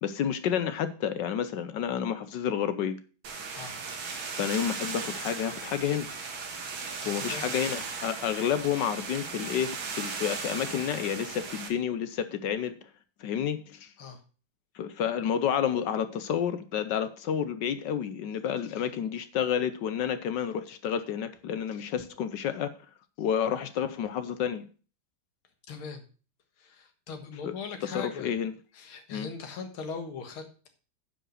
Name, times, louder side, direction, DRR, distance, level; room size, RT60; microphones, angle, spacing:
voice 1, 0.0-3.0 4.4-6.1 7.1-12.9 13.2-13.9 14.7-22.7 23.2-24.7 27.4-27.5 27.8-28.5 29.1-29.3, left 8 dB, 70° left, 12 dB, 1.2 m, -30 dB
sound 1, 3.2-11.7, right 4 dB, 75° right, 2.4 m, -37 dB
voice 2, 3.5-3.8 7.0-7.5 14.0-14.2 25.7-26.0 26.6-28.3 28.7-30.7, left 5 dB, 85° left, 6 dB, 2.4 m, -40 dB
9.9 x 5.3 x 6.5 m, 0.37 s
omnidirectional pair, 2.2 m